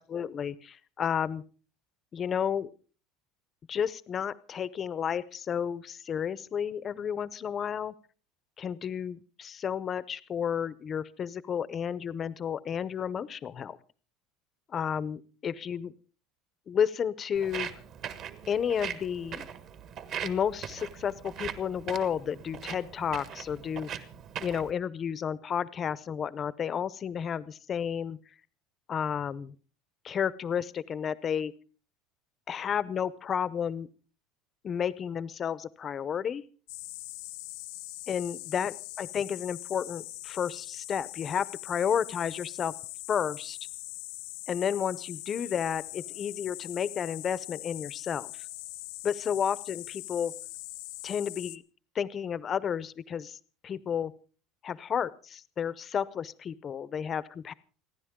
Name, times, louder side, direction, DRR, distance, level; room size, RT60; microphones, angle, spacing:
voice 1, 0.0-1.4 2.1-2.7 3.7-7.9 8.6-13.8 14.7-15.9 16.7-17.7 18.5-19.5 20.2-24.1 24.4-28.2 28.9-29.5 30.0-31.5 32.5-33.9 34.6-36.4 38.1-42.7 43.1-43.6 44.5-48.5 49.0-50.3 51.0-51.6 51.9-53.4 53.6-54.1 54.6-57.5, left 8 dB, 25° left, 17 dB, 0.7 m, -32 dB
Walk footsteps, 17.4-24.7, right 8 dB, 40° right, 1.3 m, -40 dB
sound 1, 36.7-51.6, left 21 dB, 75° left, 1.0 m, -42 dB
29.0 x 11.0 x 3.7 m, 0.38 s
cardioid pair, 170°, 0 cm